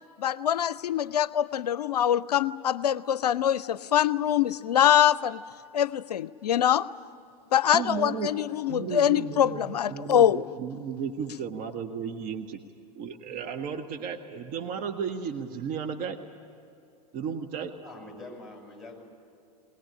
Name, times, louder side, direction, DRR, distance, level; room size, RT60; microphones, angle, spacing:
voice 1, 0.2-5.4 5.7-6.9 7.5-10.4, left 10 dB, 80° left, 18 dB, 0.5 m, -24 dB
voice 2, 7.7-8.3 8.7-12.6 13.0-16.2 17.1-17.7, right 6 dB, 45° right, 7 dB, 1.4 m, -34 dB
voice 3, 17.8-19.0, left 2 dB, ahead, 0 dB, 7.1 m, -44 dB
21.0 x 21.0 x 9.7 m, 2.6 s
figure-of-eight pair, 90°, 20 cm